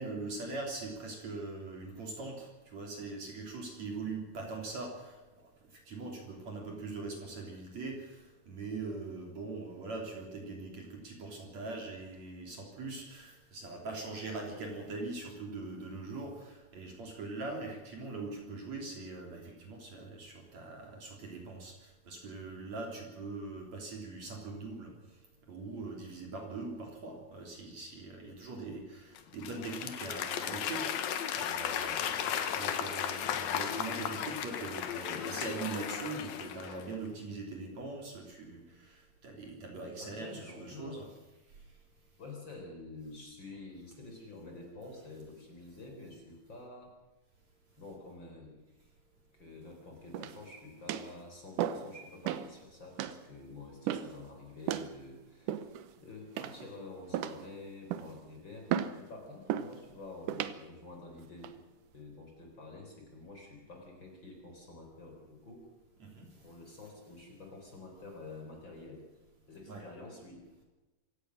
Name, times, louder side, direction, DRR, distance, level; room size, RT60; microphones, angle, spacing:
voice 1, 0.0-24.9 25.5-41.1 66.0-66.3 69.7-69.8, right 3 dB, 45° right, 1 dB, 4.2 m, -42 dB
Applause / Crowd, 29.2-36.9, left 9 dB, 70° left, 3.0 m, -35 dB
voice 2, 40.0-41.1 42.2-46.9 47.8-48.6 49.3-58.7 59.0-61.5 61.9-65.7 66.3-69.0 69.5-70.4, left 2 dB, 30° left, 2 dB, 4.4 m, -49 dB
sound 1, 50.1-50.5 50.9-51.1 51.6-51.9 52.3-52.5 53.0-53.2 53.9-54.2 54.7-54.9 55.5-55.9 56.4-56.7 57.1-57.5 57.9-58.2 58.7-59.0 59.5-59.7 60.3-60.6 61.2-61.5, right 10 dB, 70° right, 2.1 m, -34 dB
26.0 x 16.5 x 6.5 m, 1.1 s
omnidirectional pair, 4.6 m